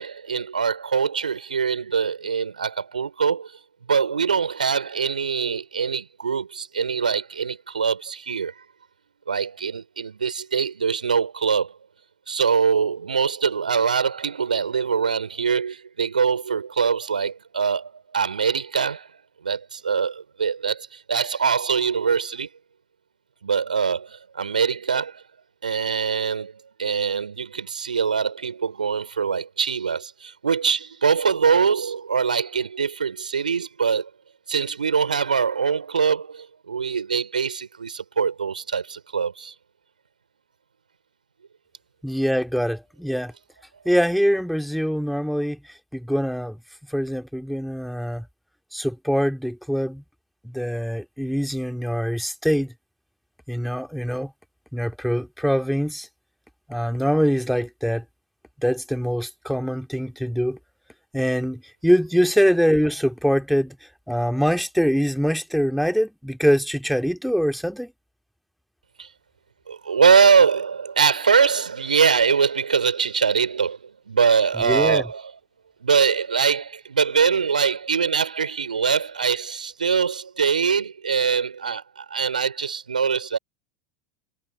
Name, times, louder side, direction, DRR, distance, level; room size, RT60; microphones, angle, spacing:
voice 1, 0.0-3.5 3.9-8.5 9.3-11.8 12.3-19.1 19.4-22.5 23.4-25.2 25.6-34.1 34.5-39.5 69.0-69.1 69.7-75.3 75.8-83.4, right 6 dB, 75° right, 4.7 m, -23 dB
voice 2, 42.0-43.3 43.8-45.6 45.9-46.6 46.9-48.2 48.7-50.0 50.4-52.7 53.5-54.3 54.7-56.1 56.7-58.0 58.6-60.6 61.1-63.8 64.1-67.9 74.6-75.0, equal, ahead, 2.5 m, -23 dB
figure-of-eight pair, 80°, 4 cm